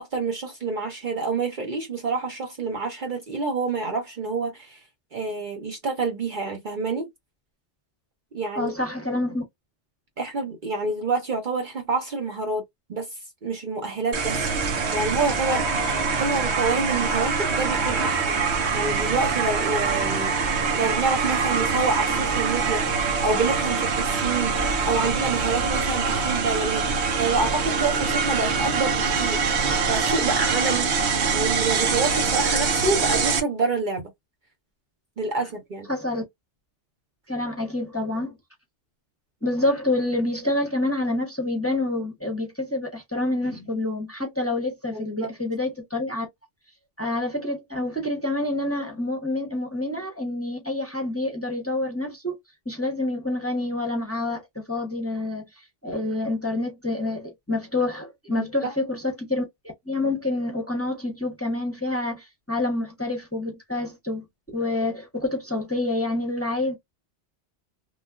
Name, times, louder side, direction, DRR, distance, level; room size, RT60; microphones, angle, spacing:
voice 1, 0.0-4.8 5.1-7.1 8.3-8.7 10.2-12.6 12.9-13.1 13.4-15.7 16.2-20.3 20.7-26.9 27.2-30.9 31.3-34.1 35.2-35.9 44.9-45.3 58.6-58.7, right 3 dB, 50° right, 0.8 m, -27 dB
voice 2, 8.6-9.4 35.9-36.2 37.3-38.4 39.4-46.3 47.0-52.4 52.7-54.4 54.7-55.4 55.8-59.4 59.9-64.2 64.5-66.8, left 2 dB, 15° left, 0.8 m, -27 dB
sound 1, 14.1-33.4, right 5 dB, 70° right, 1.0 m, -24 dB
3.2 x 2.4 x 2.3 m
omnidirectional pair, 1.2 m